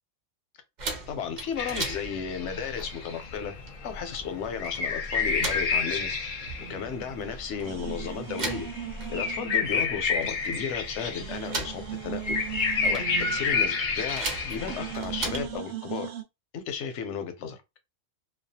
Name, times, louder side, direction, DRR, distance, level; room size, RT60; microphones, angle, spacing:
sound 1, 0.8-15.6, right 2 dB, 45° right, 0.7 m, -39 dB
voice 1, 1.1-3.5 3.8-8.7 9.1-12.4 12.8-16.1 16.5-17.6, left 7 dB, 85° left, 0.9 m, -34 dB
sound 2, 1.6-15.0, left 5 dB, 55° left, 0.6 m, -30 dB
sound 3, 6.6-7.3 7.6-10.2 10.5-10.6 11.1-14.2 14.5-16.2, right 12 dB, 75° right, 0.8 m, -39 dB
2.4 x 2.1 x 2.7 m
omnidirectional pair, 1.2 m